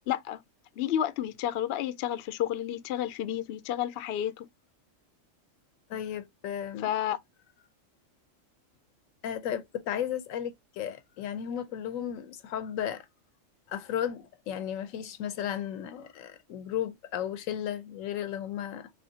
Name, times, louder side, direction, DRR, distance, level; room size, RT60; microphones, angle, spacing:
voice 1, 0.1-0.4 0.8-4.5 6.8-7.2, left 11 dB, 65° left, 0.7 m, -31 dB
voice 2, 5.9-6.9 9.2-13.1 13.7-18.9, left 10 dB, 80° left, 1.0 m, -34 dB
4.4 x 3.1 x 2.7 m
omnidirectional pair, 1.4 m